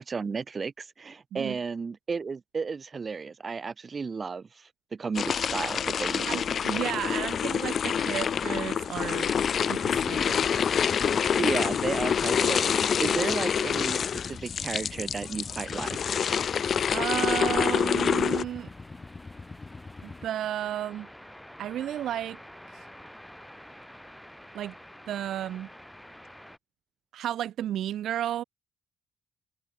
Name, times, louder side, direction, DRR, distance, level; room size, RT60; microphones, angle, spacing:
voice 1, 0.0-6.4 11.4-12.7 13.0-16.0, right 5 dB, 35° right, 1.3 m, -33 dB
sound 1, 5.1-18.4, left 7 dB, 55° left, 0.4 m, -27 dB
voice 2, 6.3-9.3 9.7-10.3 16.9-18.7 20.0-21.1 21.6-22.4 22.7-22.9 24.5-24.7 25.1-25.7 27.1-28.4, right 11 dB, 75° right, 0.6 m, -32 dB
sound 2, 9.7-20.3, left 3 dB, 25° left, 4.7 m, -44 dB
sound 3, 16.9-26.6, equal, 5° left, 4.2 m, -49 dB
cardioid pair, 90°, 0 cm